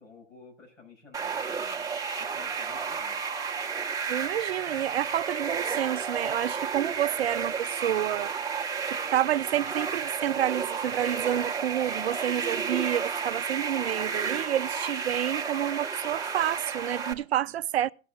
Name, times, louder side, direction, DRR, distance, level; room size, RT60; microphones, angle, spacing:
voice 1, 0.0-1.9 2.2-3.2, left 4 dB, 80° left, 6.1 m, -52 dB
sound 1, 1.1-17.1, right 6 dB, 10° right, 1.2 m, -32 dB
voice 2, 4.1-8.3 8.9-17.9, right 11 dB, 60° right, 0.5 m, -29 dB
18.5 x 6.8 x 3.7 m
figure-of-eight pair, 110°, 37 cm